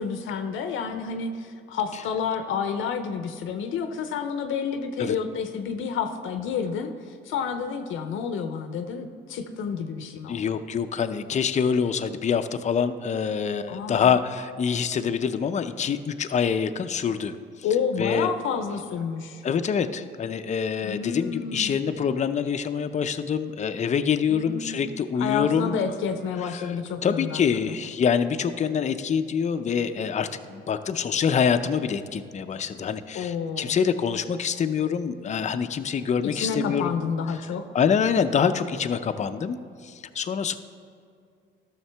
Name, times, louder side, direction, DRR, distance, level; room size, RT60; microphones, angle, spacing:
voice 1, 0.0-10.4 13.7-14.2 17.6-19.4 20.8-21.8 24.3-24.8 25.2-27.8 33.1-33.8 36.3-37.6, left 6 dB, 80° left, 7 dB, 0.6 m, -30 dB
voice 2, 10.3-17.4 18.0-18.3 19.4-25.8 26.5-26.7 27.0-36.9 37.7-40.6, left 7 dB, 35° left, 9 dB, 0.5 m, -25 dB
12.5 x 6.5 x 3.4 m, 2.3 s
cardioid pair, 90°, 20 cm